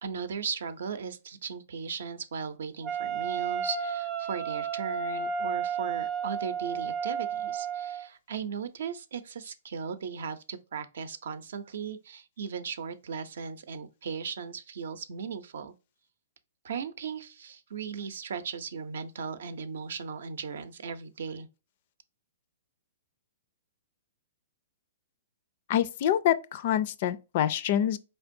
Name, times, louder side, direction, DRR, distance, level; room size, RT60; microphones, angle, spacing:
voice 1, 0.0-15.7 16.6-21.5, right 6 dB, 70° right, 0.6 m, -37 dB
Wind instrument woodwind instrument, 2.8-8.1, right 6 dB, 25° right, 0.8 m, -32 dB
voice 2, 25.7-28.0, left 10 dB, 40° left, 0.3 m, -26 dB
4.4 x 3.4 x 2.6 m
hypercardioid pair, 165°, 0 cm